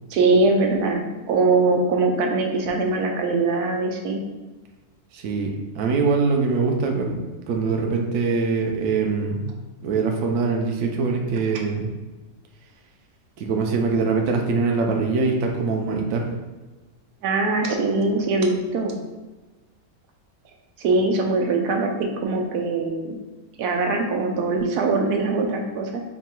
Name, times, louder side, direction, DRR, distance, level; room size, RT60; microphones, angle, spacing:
voice 1, 0.1-4.2 17.2-18.9 20.8-23.2 23.6-26.0, right 3 dB, 85° right, 2 dB, 1.2 m, -22 dB
voice 2, 5.1-7.2 7.5-9.5 9.8-11.9 13.4-16.2, right 4 dB, 70° right, 2 dB, 0.9 m, -23 dB
3.8 x 2.2 x 4.3 m, 1.2 s
omnidirectional pair, 1.6 m